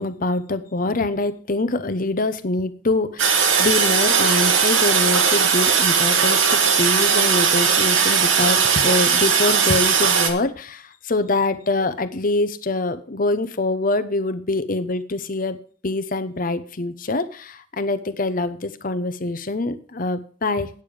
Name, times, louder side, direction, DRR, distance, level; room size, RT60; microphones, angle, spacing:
voice 1, 0.0-20.7, left 2 dB, 45° left, 12 dB, 0.8 m, -24 dB
Toilet flush, 3.2-10.3, right 6 dB, 80° right, 1.7 m, -18 dB
9.1 x 8.8 x 5.0 m, 0.42 s
head